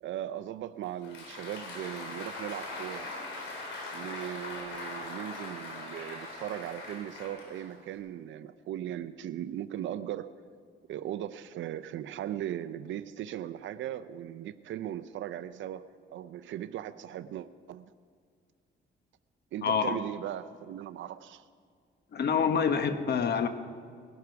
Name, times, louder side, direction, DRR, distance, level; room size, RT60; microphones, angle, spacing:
voice 1, 0.0-3.1 3.9-10.3 10.9-17.9 19.5-21.5, right 11 dB, 75° right, 12 dB, 0.6 m, -38 dB
Applause, 0.8-8.0, left 2 dB, 80° left, 4.1 m, -41 dB
voice 2, 19.6-20.0 22.1-23.5, left 6 dB, 55° left, 8 dB, 1.3 m, -26 dB
20.0 x 12.0 x 4.7 m, 2.2 s
cardioid pair, 90°, 20 cm